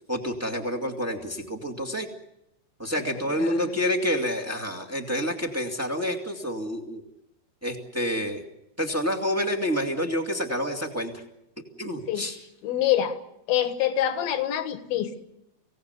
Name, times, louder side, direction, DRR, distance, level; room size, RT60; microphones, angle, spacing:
voice 1, 0.1-2.1 2.8-7.0 7.6-8.4 8.8-11.1 11.8-12.3, equal, 5° right, 2 dB, 1.1 m, -28 dB
voice 2, 2.9-3.7 12.1-12.3 12.6-13.2 13.5-15.2, left 11 dB, 70° left, 9 dB, 3.2 m, -26 dB
25.0 x 17.5 x 8.2 m, 0.85 s
omnidirectional pair, 4.5 m